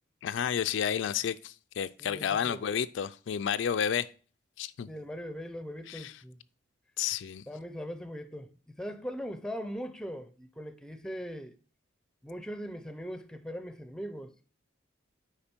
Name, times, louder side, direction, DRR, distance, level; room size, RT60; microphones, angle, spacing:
voice 1, 0.2-4.1 4.6-4.9 5.9-6.1 7.0-7.4, left 8 dB, 70° left, 0.3 m, -31 dB
voice 2, 2.0-2.6 4.9-6.4 7.5-11.5 12.2-14.3, equal, 5° left, 0.5 m, -40 dB
8.6 x 5.0 x 4.4 m
head